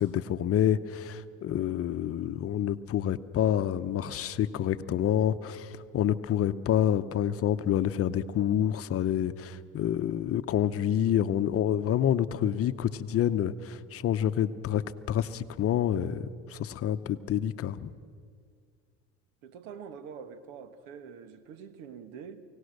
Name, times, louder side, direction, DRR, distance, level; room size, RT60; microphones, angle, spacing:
voice 1, 0.0-17.9, left 10 dB, 45° left, 0.9 m, -28 dB
voice 2, 19.4-22.4, right 6 dB, 70° right, 1.6 m, -45 dB
24.0 x 17.5 x 6.7 m
hypercardioid pair, 85°, 34 cm